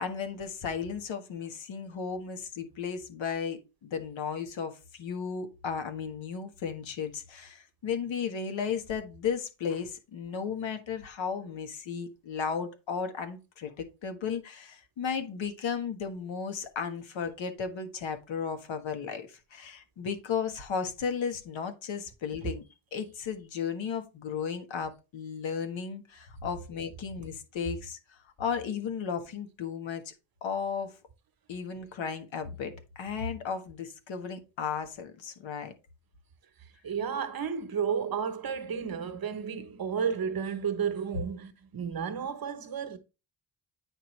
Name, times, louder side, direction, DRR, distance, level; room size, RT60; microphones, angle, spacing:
voice 1, 0.0-22.6 22.9-30.1 30.4-30.9 31.5-35.7, left 6 dB, 80° left, 1.6 m, -35 dB
voice 2, 36.6-43.0, right 7 dB, 50° right, 1.1 m, -32 dB
8.9 x 4.6 x 3.2 m
cardioid pair, 120°, 45 cm